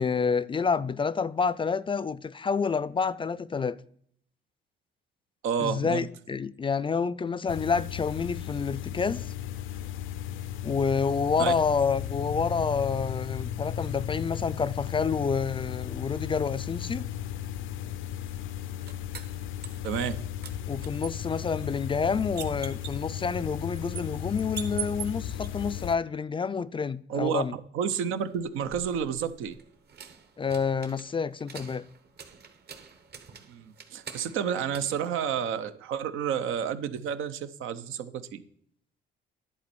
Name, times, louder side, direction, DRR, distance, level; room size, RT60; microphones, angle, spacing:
voice 1, 0.0-3.8 5.6-9.2 10.6-17.1 20.7-27.6 30.4-31.9, left 5 dB, 25° left, 0.4 m, -28 dB
voice 2, 5.4-6.1 11.4-11.5 19.8-20.2 27.1-27.4 27.7-29.6 33.5-38.4, right 8 dB, 90° right, 0.7 m, -30 dB
sound 1, 7.5-26.0, left 10 dB, 80° left, 0.5 m, -35 dB
sound 2, 18.3-20.2 20.4-25.5 28.3-35.8, right 8 dB, 55° right, 1.2 m, -44 dB
11.0 x 4.3 x 6.9 m
cardioid pair, 90°, 20 cm